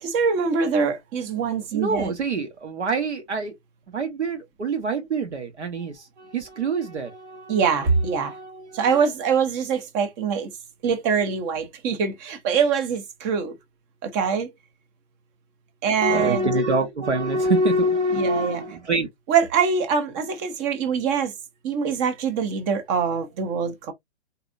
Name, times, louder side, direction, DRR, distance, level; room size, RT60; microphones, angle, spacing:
voice 1, 0.0-2.1 7.5-8.3 8.7-10.5 10.8-13.6 14.0-14.5 15.8-16.5 18.1-18.6 19.3-21.3 21.6-23.9, right 6 dB, 20° right, 0.7 m, -23 dB
voice 2, 1.7-3.5 3.9-7.6 7.9-9.0 16.0-19.1, right 2 dB, 75° right, 1.2 m, -25 dB
3.8 x 2.8 x 2.4 m
figure-of-eight pair, 125°, 34 cm